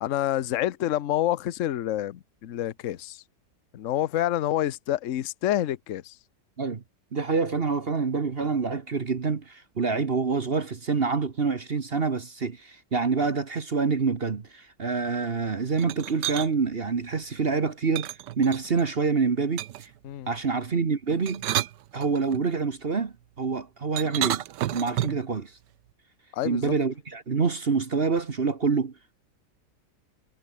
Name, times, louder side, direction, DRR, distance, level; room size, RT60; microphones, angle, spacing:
voice 1, 0.0-3.2 3.7-6.2 20.0-20.3 26.3-26.7, left 12 dB, 55° left, 1.0 m, -28 dB
voice 2, 7.1-19.9 20.3-21.4 21.9-24.4 24.7-25.5 26.4-28.9, right 5 dB, 35° right, 1.3 m, -26 dB
sound 1, 15.8-16.5 17.9-18.9 19.6-20.0 21.1-22.4 24.0-25.3, right 13 dB, 80° right, 1.4 m, -31 dB
omnidirectional pair, 1.9 m